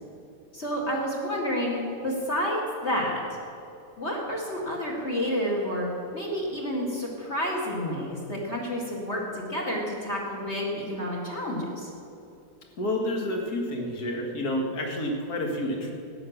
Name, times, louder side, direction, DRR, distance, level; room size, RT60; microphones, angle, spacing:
voice 1, 0.5-3.2 4.0-5.9 6.1-11.9, equal, 35° left, -2 dB, 2.4 m, -29 dB
voice 2, 12.8-15.9, left 1 dB, 55° left, 1 dB, 2.4 m, -29 dB
13.5 x 9.4 x 7.1 m, 2.7 s
omnidirectional pair, 2.0 m